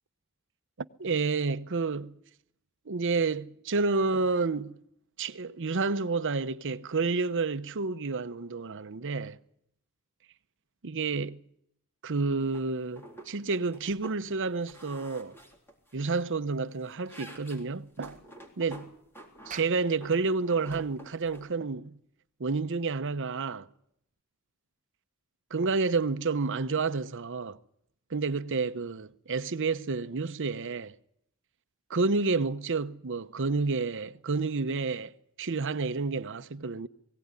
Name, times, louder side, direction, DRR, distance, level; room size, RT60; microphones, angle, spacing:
voice 1, 1.0-2.2 2.9-4.8 5.2-9.4 10.8-11.4 12.0-15.4 15.9-18.2 18.6-18.9 19.5-22.0 22.4-23.7 25.5-27.6 28.1-30.9 31.9-35.1 35.4-36.9, right 4 dB, 60° right, 0.8 m, -30 dB
sound 1, 12.5-12.7 13.0-13.3 13.6-14.2 14.6-16.2 16.6-19.6 20.0-21.5, right 1 dB, 10° left, 3.7 m, -49 dB
Clapping, 19.5-24.2, right 7 dB, 35° right, 1.3 m, -51 dB
21.5 x 17.0 x 9.7 m
head